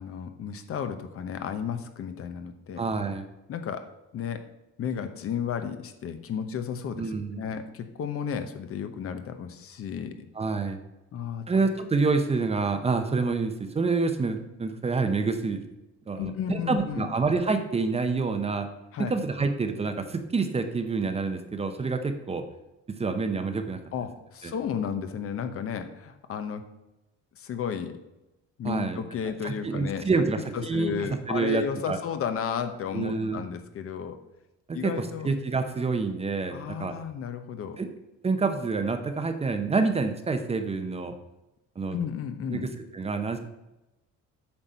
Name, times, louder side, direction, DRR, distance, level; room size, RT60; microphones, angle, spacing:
voice 1, 0.0-2.8 3.5-4.4 4.8-10.1 11.1-11.4 16.2-17.1 18.9-19.1 23.9-26.6 27.4-27.9 28.6-30.1 30.5-34.2 34.7-35.3 36.5-37.8 41.9-42.7, left 7 dB, 50° left, 9 dB, 0.9 m, -33 dB
voice 2, 2.8-3.3 7.0-7.4 10.4-10.8 11.5-15.6 16.1-18.7 19.0-22.4 23.0-23.8 24.4-24.5 28.6-29.0 29.4-30.9 31.3-32.0 32.9-33.4 34.7-36.9 37.8-37.9 38.2-41.1 41.8-42.0 42.5-43.4, right 4 dB, 20° right, 7 dB, 0.7 m, -27 dB
8.7 x 6.0 x 5.5 m, 0.97 s
cardioid pair, 150°, 29 cm